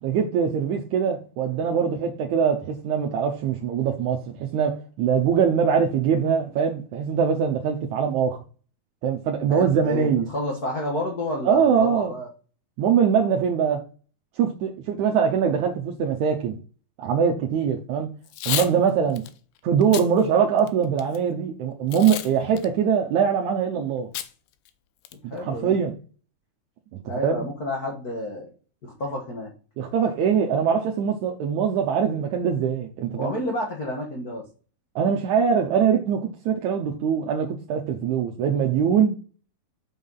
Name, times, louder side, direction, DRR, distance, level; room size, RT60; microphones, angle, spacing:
voice 1, 0.0-8.4 9.0-10.3 11.5-12.1 12.8-13.8 14.4-16.6 17.0-18.1 18.5-19.2 19.6-24.1 25.4-26.0 27.2-27.5 29.8-33.3 35.0-39.1, right 7 dB, 75° right, 1.8 m, -22 dB
voice 2, 9.5-12.3 25.3-25.8 27.1-28.5 28.8-29.5 33.2-34.5, left 1 dB, 75° left, 0.8 m, -30 dB
Packing tape duct tape / Tearing, 18.2-18.7 19.2-19.3 19.8-20.1 20.6-21.2 21.9-22.3 22.6-22.7 24.1-24.3 24.7-24.8 25.0-25.4, left 13 dB, 90° left, 2.6 m, -30 dB
5.6 x 5.6 x 5.5 m
omnidirectional pair, 4.2 m